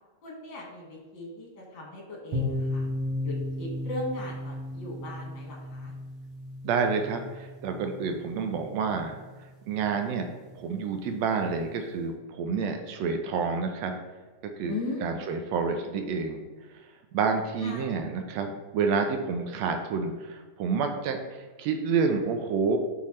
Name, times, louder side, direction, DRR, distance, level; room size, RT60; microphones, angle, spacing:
voice 1, 0.2-2.9 3.2-5.9 14.7-15.3 17.6-17.9, left 2 dB, 45° left, -1 dB, 2.2 m, -38 dB
sound 1, 2.3-10.0, left 1 dB, 50° right, 1.8 m, -35 dB
voice 2, 6.6-9.2 9.7-10.3 10.6-13.9 14.6-14.7 15.0-16.4 17.1-22.8, right 5 dB, 75° right, 5 dB, 1.8 m, -28 dB
8.1 x 5.7 x 3.1 m, 1.3 s
omnidirectional pair, 3.4 m